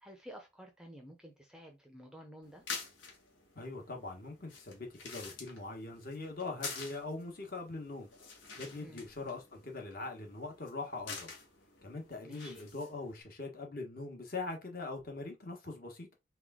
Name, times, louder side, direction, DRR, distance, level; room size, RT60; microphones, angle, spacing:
voice 1, 0.0-2.6 8.8-9.0 12.2-12.6, equal, 5° right, 0.6 m, -52 dB
sound 1, 2.4-13.2, left 4 dB, 75° left, 1.4 m, -48 dB
voice 2, 3.5-8.1 8.6-11.3 11.8-16.1, left 3 dB, 50° left, 1.2 m, -42 dB
3.5 x 3.3 x 3.6 m
head